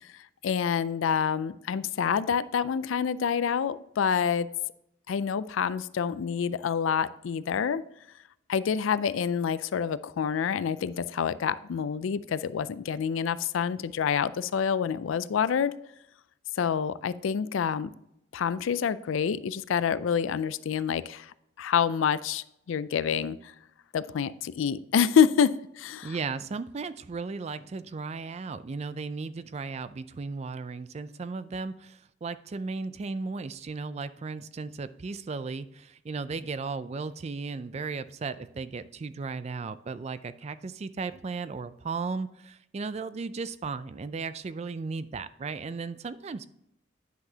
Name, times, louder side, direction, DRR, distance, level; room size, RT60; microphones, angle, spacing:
voice 1, 0.4-4.5 5.1-7.8 8.5-15.7 16.6-17.9 18.3-23.5 23.9-26.2, left 7 dB, 80° left, 16 dB, 0.4 m, -27 dB
voice 2, 26.0-46.4, right 4 dB, 35° right, 14 dB, 0.3 m, -35 dB
10.5 x 6.0 x 2.8 m, 0.80 s
head